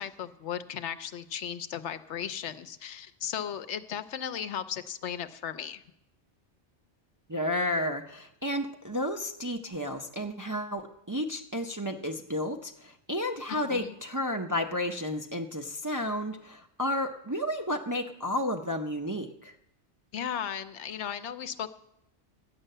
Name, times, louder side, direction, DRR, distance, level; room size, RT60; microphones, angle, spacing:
voice 1, 0.0-5.8 13.5-13.9 20.1-21.7, left 9 dB, 80° left, 11 dB, 1.0 m, -36 dB
voice 2, 7.3-19.5, left 1 dB, 25° right, 3 dB, 0.5 m, -32 dB
12.0 x 9.1 x 6.6 m, 0.83 s
omnidirectional pair, 1.2 m